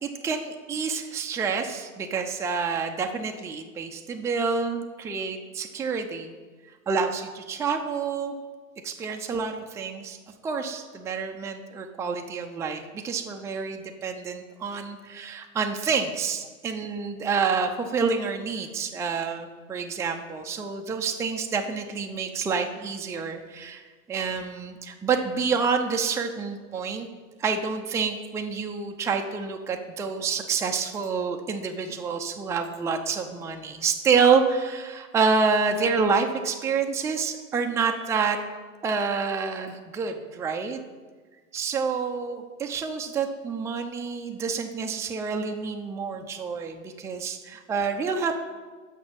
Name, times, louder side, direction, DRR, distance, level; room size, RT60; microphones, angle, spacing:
voice 1, 0.0-6.3 6.9-8.3 8.8-10.2 10.4-23.8 24.1-27.1 27.4-38.4 38.8-40.8 41.5-48.4, right 5 dB, 5° right, 3 dB, 0.4 m, -28 dB
6.2 x 5.9 x 6.1 m, 1.4 s
hypercardioid pair, 95°, 41 cm